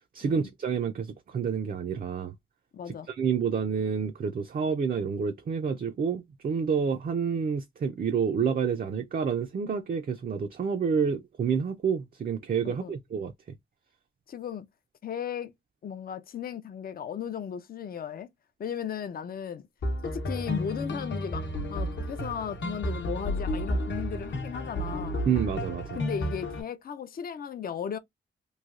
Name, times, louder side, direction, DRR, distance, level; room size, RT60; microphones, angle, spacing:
voice 1, 0.1-2.3 2.8-13.3 25.3-26.0, right 6 dB, 45° right, 0.4 m, -29 dB
voice 2, 2.7-3.1 12.6-12.9 14.3-14.7 15.0-15.5 15.8-18.3 18.6-19.7 20.0-25.2 25.9-28.0, left 8 dB, 45° left, 0.4 m, -36 dB
sound 1, 19.8-26.6, left 1 dB, 60° left, 0.8 m, -32 dB
3.1 x 2.6 x 2.4 m
wide cardioid pair, 175°, 21 cm